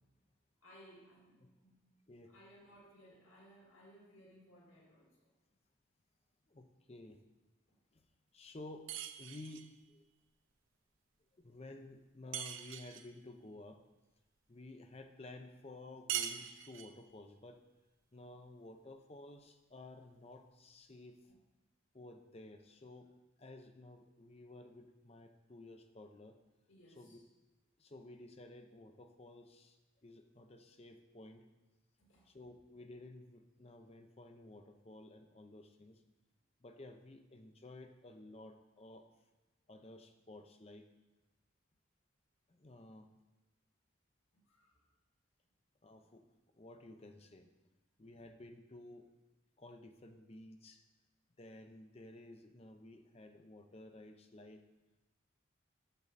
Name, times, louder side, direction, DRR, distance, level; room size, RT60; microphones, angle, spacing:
voice 1, 0.6-1.8 2.3-5.3 21.3-21.4 26.7-27.2 32.0-32.3 44.3-44.9, equal, 85° left, -3 dB, 1.9 m, -61 dB
voice 2, 6.5-7.2 7.9-8.0 8.3-10.0 11.3-13.8 14.5-17.6 18.1-21.2 21.9-26.4 26.9-27.2 27.8-31.5 32.3-36.0 36.6-39.1 39.7-40.9 42.5-43.1 45.8-46.3 46.5-47.5 48.0-49.1 49.6-50.8 51.4-54.7, left 2 dB, 30° left, 6 dB, 0.6 m, -54 dB
sound 1, 8.9-9.7 12.3-13.1 16.1-17.0, right 9 dB, 80° right, 0.6 m, -41 dB
9.2 x 7.0 x 4.1 m, 1.1 s
head